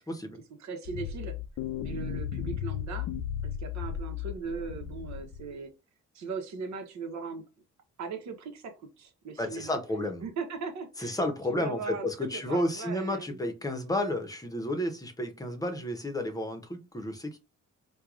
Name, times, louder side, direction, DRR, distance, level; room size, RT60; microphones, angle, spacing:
voice 1, 0.1-0.4 9.4-10.2 11.0-17.4, left 1 dB, 10° left, 0.9 m, -32 dB
voice 2, 0.6-1.3 1.8-3.1 3.4-5.7 6.1-7.4 8.0-9.8 10.2-11.2 11.5-13.4, right 5 dB, 65° right, 1.0 m, -39 dB
sound 1, 0.9-5.5, left 9 dB, 65° left, 0.5 m, -35 dB
4.5 x 2.3 x 2.4 m
cardioid pair, 90°, 30 cm